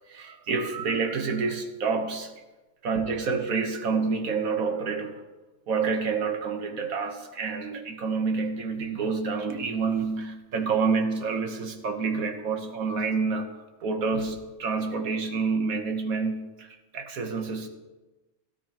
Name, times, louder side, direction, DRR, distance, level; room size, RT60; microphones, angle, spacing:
voice 1, 0.1-2.3 2.8-5.2 5.7-16.7 16.9-17.7, right 4 dB, 90° right, 5 dB, 1.6 m, -28 dB
16.5 x 12.0 x 3.0 m, 1.1 s
omnidirectional pair, 1.4 m